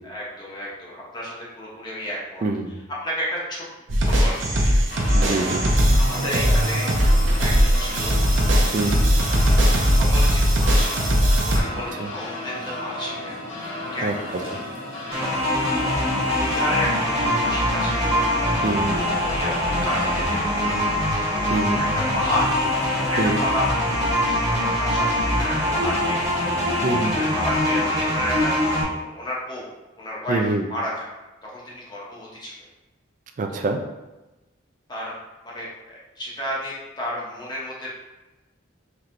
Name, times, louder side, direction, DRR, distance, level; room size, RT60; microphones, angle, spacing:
voice 1, 0.0-2.4 3.0-3.6 4.1-4.8 6.0-7.0 7.4-8.1 9.8-11.0 11.4-13.3 13.9-14.2 16.2-18.1 19.0-20.7 21.8-21.9 22.1-22.5 22.9-23.7 24.2-26.2 26.8-28.5 29.1-29.7 30.0-31.1 31.4-32.5 33.5-33.7 34.9-35.1 35.4-37.9, left 1 dB, 20° left, -6 dB, 0.8 m, -31 dB
voice 2, 2.4-2.8 5.1-5.7 8.7-9.0 12.0-12.1 14.0-14.1 18.6-19.0 21.5-21.9 23.2-23.4 26.8-27.2 30.3-30.6 33.4-33.8, right 2 dB, 40° right, 5 dB, 0.3 m, -25 dB
sound 1, 3.9-11.6, equal, 65° right, 0.7 m, -19 dB
sound 2, 4.9-20.3, left 1 dB, 70° left, 1.2 m, -34 dB
sound 3, 15.1-28.8, left 1 dB, 15° right, 1.1 m, -23 dB
4.3 x 3.1 x 2.5 m, 1.1 s
head